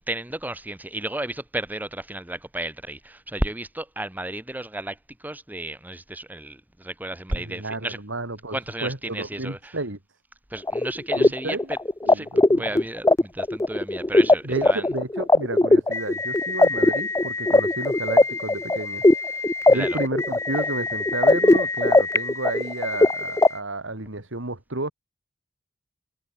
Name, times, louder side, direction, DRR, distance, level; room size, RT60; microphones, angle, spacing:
voice 1, 0.1-8.0 8.5-9.8 10.5-11.8 12.1-14.9 19.7-20.0, right 1 dB, 10° right, 1.0 m, -33 dB
voice 2, 7.4-10.0 11.2-11.7 12.0-12.6 14.4-19.0 19.7-24.9, right 2 dB, 80° right, 2.8 m, -32 dB
sound 1, 10.7-23.5, left 2 dB, 15° left, 0.5 m, -20 dB
head